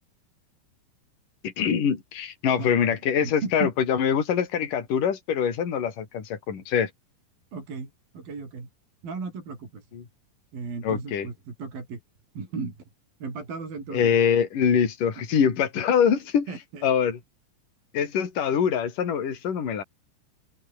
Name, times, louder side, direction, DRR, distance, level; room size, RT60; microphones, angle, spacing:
voice 1, 1.4-6.9 9.9-10.0 10.8-11.3 13.9-16.5 16.8-17.2 17.9-19.8, left 7 dB, 45° left, 5.1 m, -24 dB
voice 2, 2.6-3.7 7.5-8.7 9.0-9.9 10.5-12.0 12.3-12.7 13.2-14.2 16.5-16.9, right 4 dB, 45° right, 8.0 m, -36 dB
open air
omnidirectional pair, 5.6 m